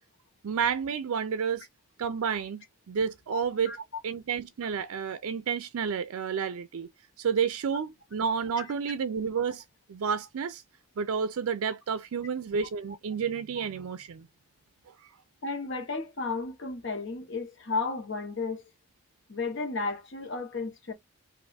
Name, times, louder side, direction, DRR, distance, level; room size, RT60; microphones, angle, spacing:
voice 1, 0.4-1.7 2.0-3.8 4.0-6.9 7.2-9.6 9.9-10.6 11.0-14.3 15.0-15.1, right 6 dB, 80° right, 0.4 m, -30 dB
voice 2, 15.4-18.6 19.3-20.9, left 3 dB, 55° left, 1.1 m, -33 dB
3.3 x 2.6 x 4.0 m
head